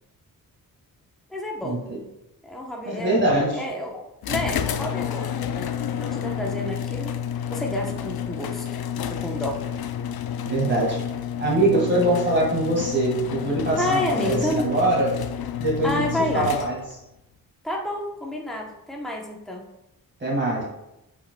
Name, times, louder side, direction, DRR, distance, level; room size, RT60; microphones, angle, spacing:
voice 1, 1.3-1.8 2.4-3.2 3.5-7.1 7.5-9.6 13.8-14.7 15.8-16.5 17.6-19.7, left 1 dB, ahead, -1 dB, 0.8 m, -30 dB
voice 2, 2.8-3.6 10.5-11.0 11.4-15.1 15.6-16.1 16.3-16.8 20.2-20.6, right 1 dB, 30° right, -4 dB, 1.9 m, -22 dB
sound 1, 4.2-17.0, left 9 dB, 80° left, 0.5 m, -30 dB
8.6 x 5.0 x 2.2 m, 0.87 s
wide cardioid pair, 130°, 36 cm